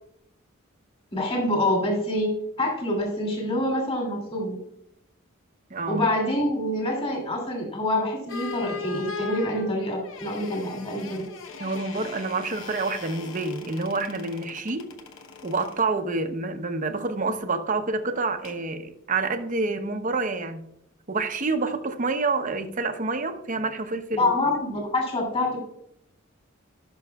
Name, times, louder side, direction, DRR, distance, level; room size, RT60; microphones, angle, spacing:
voice 1, 1.1-2.3 2.6-4.6 5.9-11.2 24.1-25.6, left 1 dB, 30° left, 2.7 m, -26 dB
voice 2, 5.7-6.1 11.6-14.9 15.4-20.7 21.1-24.3, right 3 dB, 40° right, 0.8 m, -28 dB
sound 1, 8.3-15.9 18.4-18.7, left 6 dB, 60° left, 1.0 m, -39 dB
17.0 x 6.2 x 2.4 m
head